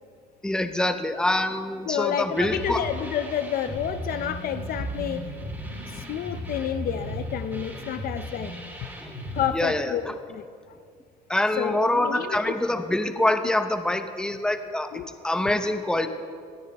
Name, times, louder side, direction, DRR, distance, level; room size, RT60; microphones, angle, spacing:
voice 1, 0.4-2.8 9.0-9.1 9.5-9.9 11.3-16.1, left 1 dB, 5° left, 8 dB, 0.9 m, -25 dB
voice 2, 1.9-5.3 5.9-8.5 8.8-8.9 9.3-10.8 11.6-12.5 14.9-15.1, left 9 dB, 60° left, 11 dB, 0.6 m, -30 dB
sound 1, 2.3-9.5, equal, 15° right, 3.8 m, -36 dB
20.0 x 13.5 x 3.5 m, 2.2 s
cardioid pair, 110°, 17 cm